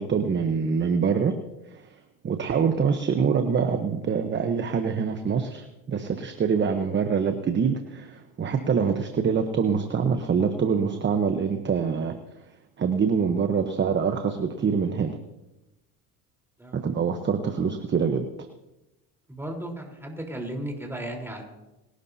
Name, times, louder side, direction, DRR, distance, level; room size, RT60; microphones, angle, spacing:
voice 1, 0.0-1.3 1.7-1.9 2.2-12.2 12.8-15.2 16.7-18.2, right 6 dB, 25° right, 7 dB, 1.0 m, -25 dB
voice 2, 19.3-21.4, right 1 dB, 5° right, 0 dB, 4.0 m, -35 dB
29.5 x 11.5 x 2.8 m, 0.97 s
supercardioid pair, 95°, 42 cm